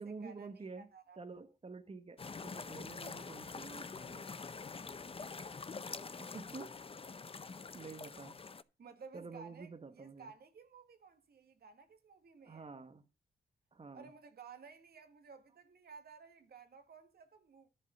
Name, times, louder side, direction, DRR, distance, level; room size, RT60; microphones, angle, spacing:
voice 1, 0.0-0.9 1.2-4.2 6.2-6.8 7.4-8.4 9.1-10.3 12.5-13.0 13.7-14.1, right 4 dB, 35° right, 1.2 m, -49 dB
voice 2, 0.8-1.2 8.8-12.7 13.9-17.7, right 5 dB, 70° right, 1.7 m, -55 dB
sound 1, 2.2-8.6, left 4 dB, 35° left, 0.7 m, -46 dB
11.0 x 4.7 x 6.7 m
cardioid pair, 70°, 17 cm